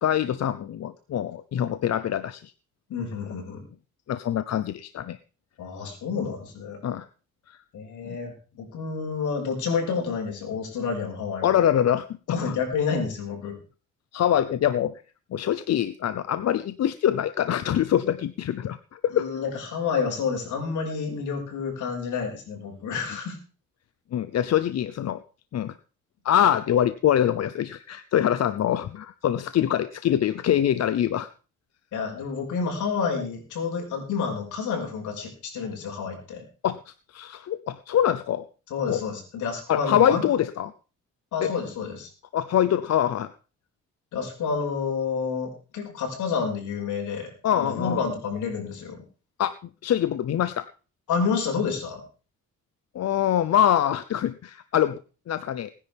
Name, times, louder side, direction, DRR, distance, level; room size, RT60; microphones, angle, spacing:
voice 1, 0.0-2.5 4.1-5.2 6.8-7.0 7.5-7.6 8.1-8.2 11.4-12.1 12.4-12.6 14.1-15.0 15.3-19.3 24.1-25.2 25.5-25.7 26.2-31.3 36.6-38.4 38.9-39.0 39.7-40.7 41.4-41.5 42.3-43.3 47.4-48.0 49.4-49.5 49.8-50.6 52.9-55.0 55.3-55.7, left 10 dB, 55° left, 13 dB, 0.8 m, -24 dB
voice 2, 2.9-3.6 5.6-6.8 7.7-11.5 12.3-13.6 19.1-23.4 31.9-36.4 38.7-40.2 41.3-42.1 44.1-49.1 51.1-52.0, left 5 dB, 80° left, 2 dB, 5.7 m, -29 dB
20.5 x 10.5 x 3.5 m, 0.35 s
cardioid pair, 90°, 30 cm